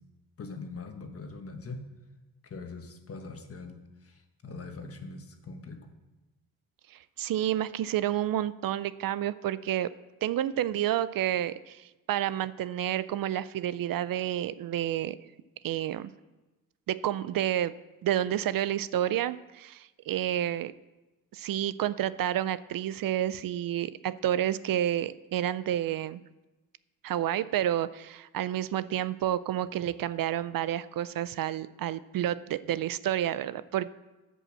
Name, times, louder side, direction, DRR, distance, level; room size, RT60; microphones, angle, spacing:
voice 1, 0.4-1.8 2.4-5.8, left 3 dB, 40° left, 5 dB, 1.4 m, -42 dB
voice 2, 6.9-9.9 10.2-15.2 15.6-16.1 16.9-17.7 18.0-20.7 21.3-26.2 27.0-33.9, right 12 dB, 65° right, 16 dB, 0.5 m, -30 dB
14.5 x 5.5 x 7.4 m, 1.1 s
wide cardioid pair, 155°, 37 cm